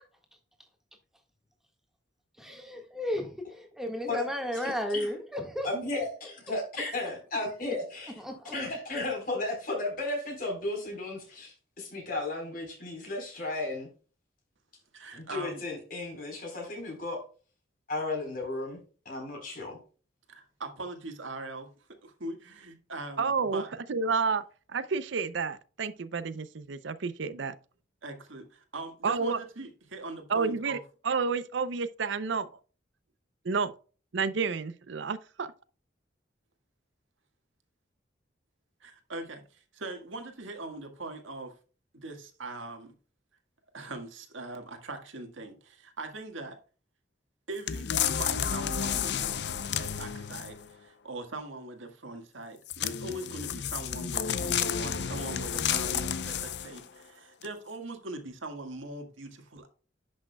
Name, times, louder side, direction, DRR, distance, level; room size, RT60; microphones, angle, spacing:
voice 1, 2.4-5.7 8.2-8.6, left 1 dB, ahead, 1.6 m, -34 dB
voice 2, 4.6-5.1 5.6-8.1 8.5-13.9 15.1-17.2 17.9-18.8 19.1-19.8, left 2 dB, 45° left, 4.0 m, -34 dB
voice 3, 14.9-15.6 20.3-21.7 22.0-23.7 28.0-30.8 38.8-41.5 41.9-42.9 43.7-46.6 47.5-49.3 49.8-59.7, right 2 dB, 90° right, 1.7 m, -41 dB
voice 4, 23.2-23.6 23.9-24.4 24.7-27.5 29.0-29.4 30.3-30.8 31.0-32.5 33.4-33.7 34.1-35.5, right 5 dB, 70° right, 0.5 m, -30 dB
sound 1, 47.7-50.7 52.7-56.8 57.4-57.5, left 8 dB, 60° left, 0.5 m, -31 dB
10.5 x 6.3 x 2.3 m
head